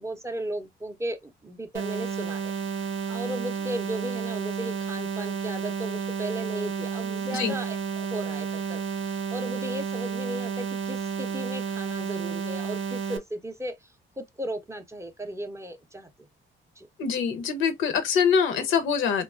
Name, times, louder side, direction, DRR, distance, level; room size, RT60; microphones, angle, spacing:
voice 1, 0.0-2.5 3.1-13.9 14.2-16.3 16.8-16.9, right 1 dB, 15° right, 0.4 m, -36 dB
sound 1, 1.7-13.2, right 6 dB, 80° right, 0.7 m, -31 dB
voice 2, 17.0-19.2, left 6 dB, 80° left, 0.6 m, -24 dB
2.9 x 2.2 x 2.3 m
cardioid pair, 90°, 20 cm